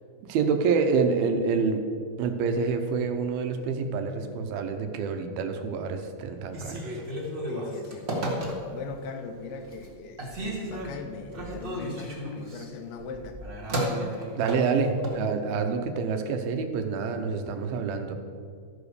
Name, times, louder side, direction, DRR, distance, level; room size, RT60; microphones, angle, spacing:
voice 1, 0.3-1.8 2.2-7.0 14.4-18.2, right 5 dB, 85° right, 6 dB, 2.6 m, -27 dB
Telephone, 6.4-8.9 9.4-9.9 10.2-15.2, right 1 dB, 45° right, 0.8 m, -33 dB
voice 2, 7.5-13.4, left 4 dB, 90° left, 6 dB, 2.8 m, -40 dB
13.5 x 5.0 x 6.7 m, 2.2 s
omnidirectional pair, 4.4 m